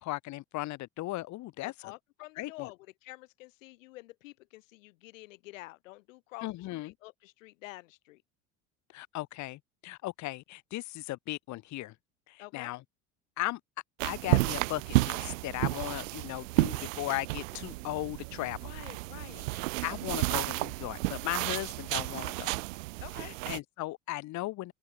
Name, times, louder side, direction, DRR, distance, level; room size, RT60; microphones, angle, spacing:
voice 1, 0.0-1.9 2.4-2.7 6.4-6.9 8.9-11.9 12.3-12.8 13.4-13.6 14.0-18.6 19.5-22.6 23.2-24.7, left 18 dB, 45° left, 0.9 m, -37 dB
voice 2, 1.6-8.2 12.4-12.7 18.6-19.5 23.0-23.3, left 20 dB, 80° left, 0.9 m, -48 dB
sound 1, 14.0-23.6, right 22 dB, 80° right, 0.6 m, -32 dB
open air
hypercardioid pair, 85°, 38 cm